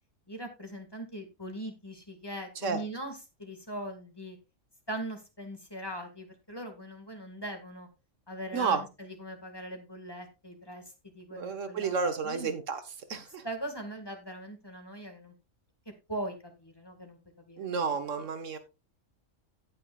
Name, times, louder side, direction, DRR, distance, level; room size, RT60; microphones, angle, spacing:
voice 1, 0.3-4.4 4.9-7.9 8.3-12.5 13.4-15.3 16.1-17.2 17.5-17.8 18.2-18.3, right 1 dB, 20° left, 4 dB, 1.8 m, -41 dB
voice 2, 11.3-12.8 13.1-13.4 17.6-18.6, right 5 dB, 75° right, 9 dB, 1.5 m, -31 dB
17.5 x 6.3 x 2.3 m, 0.26 s
omnidirectional pair, 1.3 m